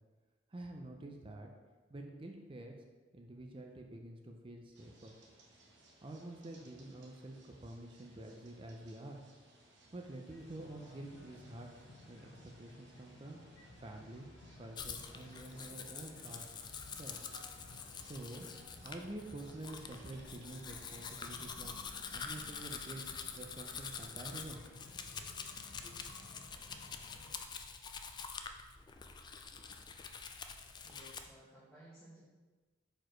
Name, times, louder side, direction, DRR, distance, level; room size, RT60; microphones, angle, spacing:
voice 1, 0.5-1.5 1.9-2.7 3.1-5.1 6.0-9.2 9.9-11.7 12.1-13.4 13.8-14.3 14.6-16.5 17.0-17.2 18.0-18.5 18.8-21.8 22.1-23.1 23.3-24.6 25.8-26.0, right 1 dB, 30° right, 2 dB, 0.5 m, -48 dB
sound 1, 4.7-21.5, right 2 dB, 70° right, 1.0 m, -64 dB
sound 2, 10.3-27.4, left 1 dB, 80° left, 1.1 m, -57 dB
Domestic sounds home sounds, 14.8-31.3, left 6 dB, 25° left, 0.3 m, -46 dB
voice 2, 30.8-32.2, right 1 dB, 5° left, -9 dB, 1.1 m, -57 dB
4.7 x 4.4 x 4.5 m, 1.3 s
head